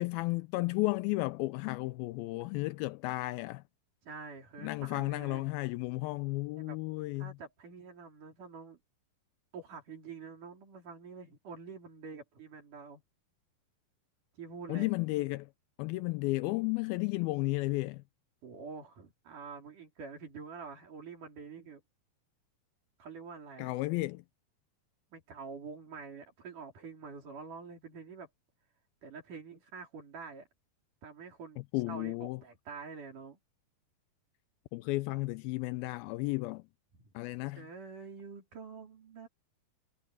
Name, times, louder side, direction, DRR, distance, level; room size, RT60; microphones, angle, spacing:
voice 1, 0.0-3.6 4.6-7.4 14.7-15.5 15.8-18.0 23.6-24.2 31.7-32.4 34.7-36.6 37.1-37.7, left 21 dB, 85° left, 2.4 m, -33 dB
voice 2, 4.0-5.5 6.6-6.8 7.2-8.8 9.5-13.0 14.3-15.0 18.4-21.8 23.0-23.7 25.1-28.3 29.0-30.5 31.0-33.4 36.9-37.1 37.6-39.3, right 5 dB, 60° right, 5.4 m, -47 dB
omnidirectional pair, 4.3 m